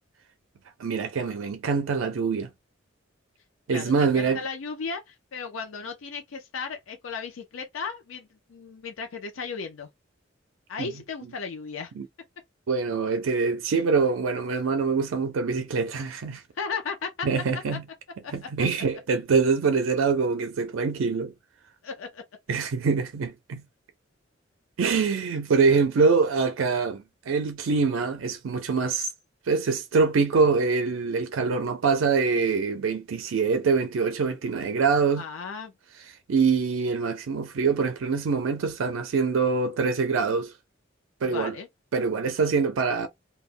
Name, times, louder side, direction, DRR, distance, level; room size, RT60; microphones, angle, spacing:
voice 1, 0.8-2.5 3.7-4.4 10.8-10.9 12.0-12.1 12.7-16.4 17.2-17.8 18.3-21.3 22.5-23.6 24.8-29.1 29.5-35.2 36.3-40.5 41.2-41.6 41.9-43.1, right 5 dB, 90° right, 0.4 m, -24 dB
voice 2, 3.7-9.9 10.7-11.9 16.6-17.3 17.7-17.8 18.2-18.3 21.8-22.2 35.2-35.7 41.2-41.7, left 5 dB, 90° left, 0.5 m, -35 dB
2.2 x 2.1 x 3.4 m
head